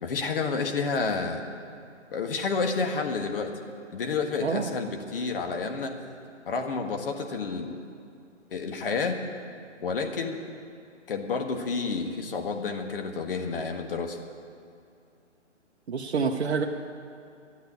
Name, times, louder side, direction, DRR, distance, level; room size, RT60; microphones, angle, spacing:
voice 1, 0.0-1.4 2.1-3.5 3.9-6.0 6.4-7.8 8.5-9.2 9.8-10.4 11.1-14.2, left 4 dB, 50° left, 4 dB, 1.5 m, -30 dB
voice 2, 4.4-4.7 15.9-16.6, right 5 dB, 60° right, 1 dB, 0.9 m, -27 dB
12.5 x 8.2 x 9.3 m, 2.6 s
hypercardioid pair, 150°, 37 cm